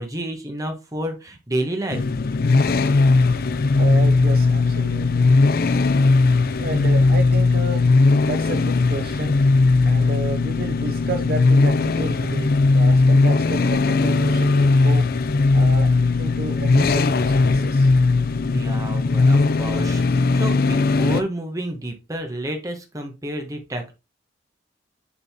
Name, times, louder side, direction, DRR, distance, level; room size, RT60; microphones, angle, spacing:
voice 1, 0.0-2.1 18.5-23.9, right 1 dB, 20° right, 4 dB, 1.4 m, -30 dB
sound 1, 1.9-21.2, left 3 dB, 55° left, 0.5 m, -18 dB
voice 2, 3.8-5.4 6.6-7.8 8.2-9.4 9.8-15.0 15.5-15.9 16.2-17.9, right 3 dB, 55° right, 7 dB, 0.7 m, -31 dB
7.2 x 4.0 x 3.7 m, 0.26 s
head